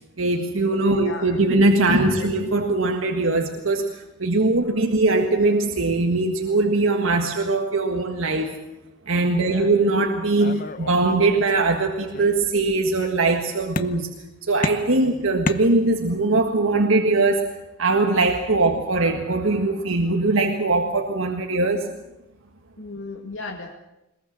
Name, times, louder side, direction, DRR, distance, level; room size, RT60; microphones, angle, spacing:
voice 1, 0.2-8.6 9.1-14.1 14.4-22.0, right 2 dB, 85° right, 4 dB, 1.7 m, -21 dB
voice 2, 0.9-1.4 1.9-2.3 4.7-4.9 9.3-10.1 14.9-15.2 22.8-23.7, left 3 dB, 80° left, 1 dB, 2.2 m, -37 dB
sound 1, 10.4-11.7 12.1-12.8 13.8-14.3 14.6-16.2, left 2 dB, 40° left, 0.9 m, -32 dB
22.0 x 21.0 x 7.3 m, 0.92 s
head